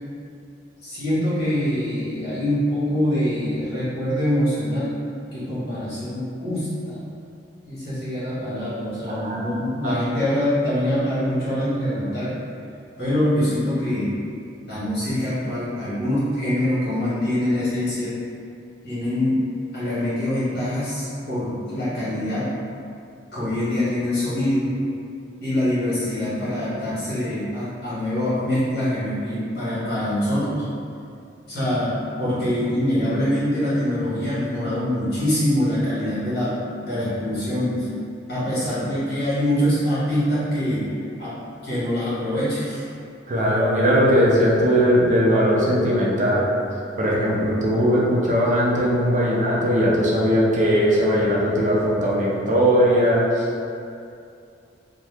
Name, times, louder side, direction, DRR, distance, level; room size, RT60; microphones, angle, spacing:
voice 1, 0.8-5.0 5.3-7.0 7.7-12.3 13.0-14.1 14.7-18.1 18.8-19.4 19.7-22.5 23.3-24.7 25.4-30.6 31.5-36.5 36.8-37.9 38.3-40.8 41.2-41.3 41.6-42.8, left 1 dB, 60° left, -12 dB, 1.4 m, -24 dB
voice 2, 9.1-9.5 9.8-9.9 43.3-46.4 47.0-53.4, equal, 45° right, -5 dB, 0.5 m, -19 dB
2.7 x 2.2 x 3.3 m, 2.5 s
head